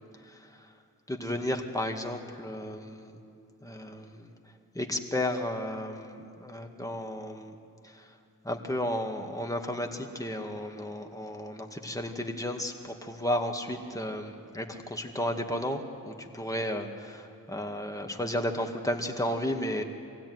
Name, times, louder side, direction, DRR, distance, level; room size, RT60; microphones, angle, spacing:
voice 1, 0.3-0.7 1.1-3.2 3.6-4.3 4.7-7.6 7.8-8.1 8.4-19.8, left 1 dB, 10° left, 2 dB, 2.1 m, -33 dB
23.5 x 16.5 x 9.5 m, 2.4 s
wide cardioid pair, 70°, 35 cm